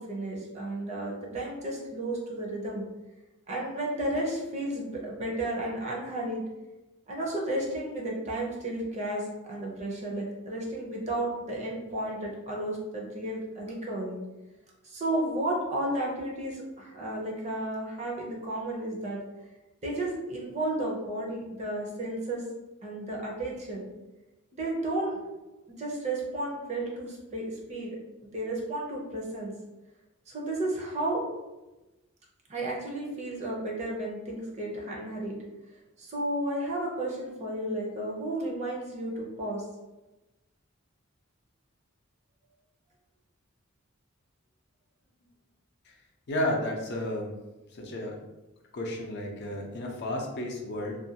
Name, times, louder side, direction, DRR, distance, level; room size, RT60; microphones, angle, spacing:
voice 1, 0.0-2.8 3.5-6.4 7.1-14.2 14.8-19.2 19.8-22.4 22.8-23.9 24.5-25.2 25.8-28.0 28.2-29.5 30.3-31.2 32.5-35.4 36.0-39.6, right 1 dB, 35° right, -2 dB, 0.6 m, -33 dB
voice 2, 46.3-47.3 47.7-48.2 48.7-51.0, left 1 dB, 55° left, 0 dB, 0.5 m, -32 dB
2.4 x 2.2 x 2.7 m, 1.1 s
head